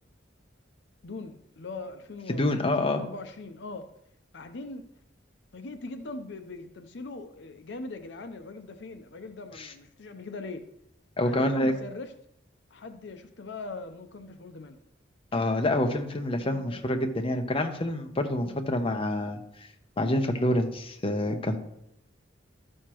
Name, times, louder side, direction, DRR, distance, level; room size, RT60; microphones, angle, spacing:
voice 1, 1.0-3.9 4.3-4.9 5.5-10.7 11.2-12.1 12.7-14.8 15.3-15.7 16.3-16.9 18.4-18.6, left 2 dB, 65° left, 8 dB, 0.6 m, -41 dB
voice 2, 2.4-3.0 9.6-9.7 11.2-11.7 15.3-19.7 20.0-21.6, left 1 dB, 30° left, 4 dB, 0.8 m, -27 dB
13.0 x 6.5 x 3.0 m, 0.79 s
head